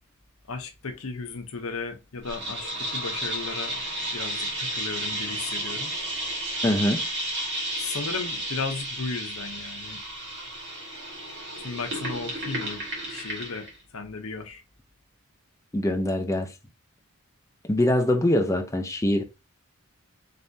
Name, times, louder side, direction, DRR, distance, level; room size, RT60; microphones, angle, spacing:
voice 1, 0.5-3.7 4.1-5.9 7.8-10.0 11.6-12.8 13.1-13.7 13.9-14.6, left 4 dB, 70° left, 0.8 m, -35 dB
sound 1, 2.2-13.7, right 1 dB, 50° right, 1.5 m, -32 dB
voice 2, 6.6-7.0 15.7-16.5 17.7-19.2, left 1 dB, 15° left, 0.5 m, -23 dB
4.1 x 3.4 x 2.7 m
head